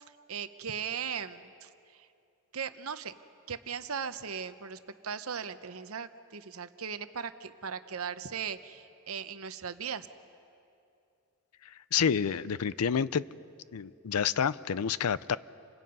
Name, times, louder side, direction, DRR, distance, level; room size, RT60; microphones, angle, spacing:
voice 1, 0.3-2.1 2.5-3.1 3.5-10.1, right 7 dB, 65° right, 11 dB, 0.9 m, -38 dB
voice 2, 11.6-13.2 13.7-15.4, left 7 dB, 75° left, 18 dB, 0.5 m, -29 dB
29.0 x 25.0 x 5.5 m, 2.6 s
head